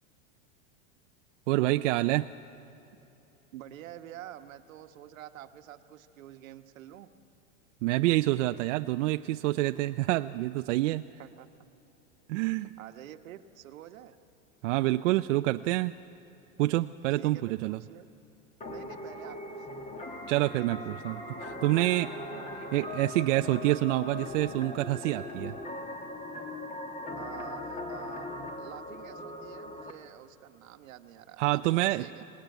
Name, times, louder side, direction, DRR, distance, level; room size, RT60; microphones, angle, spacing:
voice 1, 1.5-2.3 7.8-11.0 12.3-12.7 14.6-16.0 16.6-17.8 20.3-22.1 22.7-25.6 31.4-32.1, right 17 dB, 70° right, 9 dB, 0.6 m, -27 dB
voice 2, 3.5-7.1 11.2-11.5 12.8-14.1 17.2-18.1 18.6-19.8 20.4-20.5 22.3-22.5 27.2-28.3 28.6-32.2, right 12 dB, 90° right, 8 dB, 1.3 m, -47 dB
sound 1, 18.6-29.9, left 2 dB, 20° left, 1.7 m, -40 dB
26.0 x 18.5 x 9.2 m, 2.9 s
supercardioid pair, 150°, 39 cm